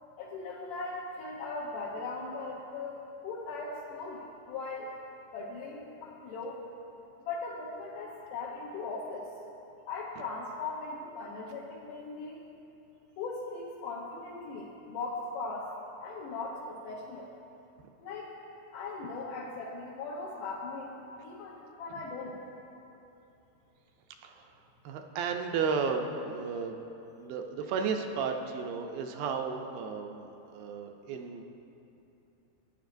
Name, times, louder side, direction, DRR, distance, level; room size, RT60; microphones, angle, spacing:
voice 1, 0.2-4.9 5.3-6.6 7.2-9.3 9.9-12.4 13.2-15.7 16.0-17.3 18.0-18.3 18.7-22.4, left 3 dB, 70° left, -6 dB, 2.1 m, -39 dB
voice 2, 24.2-24.6 24.8-26.8 27.2-31.4, right 5 dB, 80° right, 4 dB, 2.2 m, -33 dB
17.5 x 10.0 x 2.6 m, 2.9 s
omnidirectional pair, 4.6 m